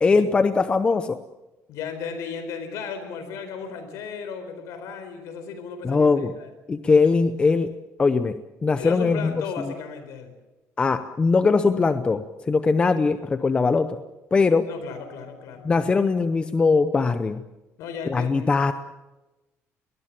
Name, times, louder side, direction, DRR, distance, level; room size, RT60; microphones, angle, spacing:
voice 1, 0.0-1.2 5.8-6.3 6.7-7.7 8.0-9.4 10.8-14.0 14.3-14.7 15.6-17.4 18.1-18.7, left 4 dB, 20° left, 10 dB, 0.7 m, -21 dB
voice 2, 1.7-6.5 8.7-10.3 14.7-15.9 17.8-18.5, left 6 dB, 85° left, 9 dB, 4.3 m, -35 dB
22.5 x 20.0 x 7.5 m, 1.1 s
cardioid pair, 160°, 5 cm